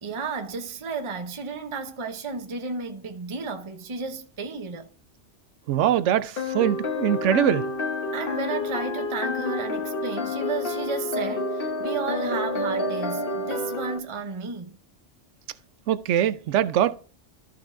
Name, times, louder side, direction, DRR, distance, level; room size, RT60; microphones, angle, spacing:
voice 1, 0.0-4.9 8.1-14.8, right 4 dB, 30° right, 0.8 m, -33 dB
voice 2, 5.7-7.7 15.9-17.0, right 10 dB, 80° right, 0.9 m, -22 dB
sound 1, 6.4-14.0, left 2 dB, 50° left, 1.2 m, -29 dB
13.5 x 6.0 x 2.6 m
omnidirectional pair, 1.2 m